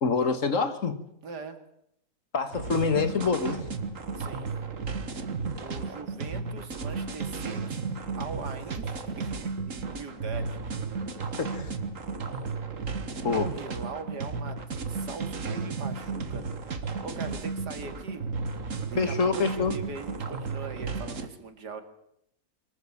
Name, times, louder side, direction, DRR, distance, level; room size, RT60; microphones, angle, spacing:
voice 1, 0.0-1.0 2.3-3.7 11.4-11.7 13.2-13.5 19.0-19.7, left 5 dB, 50° left, 11 dB, 1.8 m, -26 dB
voice 2, 1.2-1.6 4.1-4.5 5.6-7.8 8.2-10.8 13.3-16.4 16.8-18.2 18.9-21.8, right 4 dB, 80° right, 8 dB, 2.8 m, -41 dB
sound 1, 2.5-21.3, right 4 dB, 50° right, 1.9 m, -34 dB
23.5 x 13.5 x 8.6 m, 0.75 s
omnidirectional pair, 1.7 m